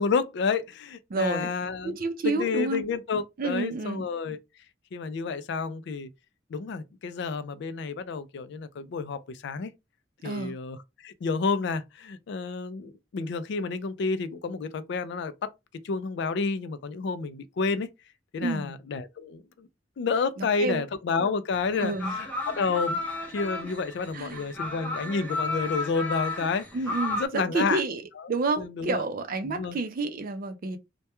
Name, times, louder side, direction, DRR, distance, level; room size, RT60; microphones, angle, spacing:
voice 1, 0.0-2.0 2.2-4.4 4.9-6.1 6.5-9.7 10.2-15.5 15.8-17.9 18.3-19.7 20.0-21.9 22.2-23.0 23.3-26.6 27.2-27.8 28.6-29.0 29.4-29.8, left 4 dB, 65° left, 0.4 m, -30 dB
voice 2, 1.1-1.5 1.8-2.8 3.4-4.0 10.2-10.5 18.4-18.7 20.4-20.8 21.8-22.1 24.1-24.4 26.7-28.0 28.3-30.8, right 3 dB, 50° right, 0.4 m, -29 dB
sound 1, 21.5-27.3, left 2 dB, 10° left, 0.6 m, -33 dB
2.2 x 2.2 x 2.8 m
head